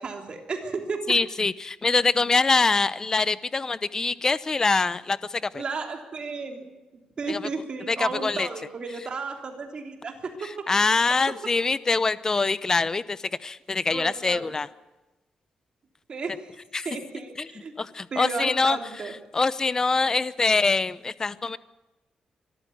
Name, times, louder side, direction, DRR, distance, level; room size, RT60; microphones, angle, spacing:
voice 1, 0.0-1.0 5.5-6.7 7.2-10.5 10.8-11.0 13.9-14.5 16.1-16.4 16.8-17.7 18.1-19.1, right 4 dB, 40° right, 4 dB, 3.4 m, -33 dB
voice 2, 1.1-5.6 7.3-7.5 7.9-8.5 10.4-14.7 16.7-16.9 17.4-17.5 17.8-18.8 19.3-21.6, left 4 dB, 25° left, 17 dB, 0.7 m, -24 dB
24.0 x 14.0 x 9.5 m, 1.1 s
cardioid pair, 135°, 2 cm